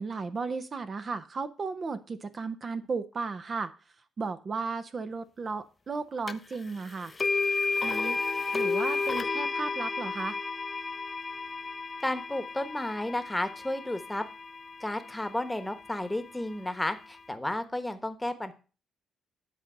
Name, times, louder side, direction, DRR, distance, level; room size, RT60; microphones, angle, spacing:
voice 1, 0.0-3.7 4.2-7.1 7.8-8.2 8.5-10.4, right 4 dB, 40° right, 10 dB, 0.7 m, -35 dB
sound 1, 6.3-6.4 7.2-15.2, left 4 dB, 30° left, 0.5 m, -32 dB
voice 2, 12.0-14.2 14.8-18.5, left 1 dB, 10° left, 9 dB, 1.1 m, -32 dB
10.5 x 4.0 x 6.6 m, 0.35 s
cardioid pair, 90°, 0 cm